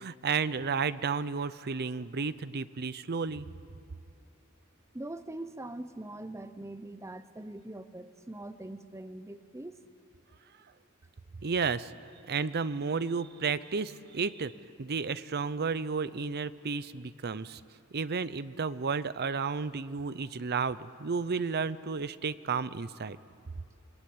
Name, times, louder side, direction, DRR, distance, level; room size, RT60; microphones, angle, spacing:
voice 1, 0.0-3.5 11.4-11.9 12.3-14.5 14.8-17.6 17.9-23.2, right 5 dB, 50° right, 15 dB, 0.7 m, -32 dB
voice 2, 4.9-9.8, right 1 dB, 15° right, 11 dB, 0.7 m, -42 dB
28.0 x 21.0 x 8.5 m, 2.8 s
head